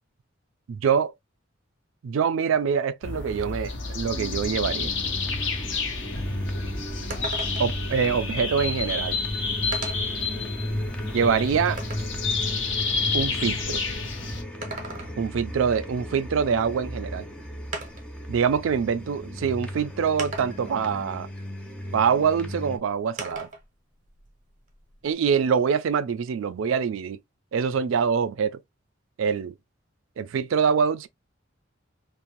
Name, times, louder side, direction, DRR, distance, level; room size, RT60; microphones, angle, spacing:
voice 1, 0.7-1.1 2.0-4.9 7.6-9.2 11.1-11.8 13.1-13.8 15.2-17.3 18.3-21.3 21.9-23.5 25.0-27.2 27.5-28.6 29.2-29.5 30.2-31.1, right 6 dB, 80° right, 0.4 m, -24 dB
sound 1, 3.0-14.4, left 4 dB, 65° left, 0.8 m, -30 dB
sound 2, 4.1-22.8, left 1 dB, 5° left, 0.4 m, -35 dB
sound 3, 7.1-7.9 8.9-9.0 9.7-10.2 10.8-12.2 14.4-15.4 16.9-17.0 17.7-18.2 19.2-19.3 20.2-20.8 23.2-23.7 24.0-25.1, right 2 dB, 40° right, 0.7 m, -37 dB
2.6 x 2.1 x 2.9 m
head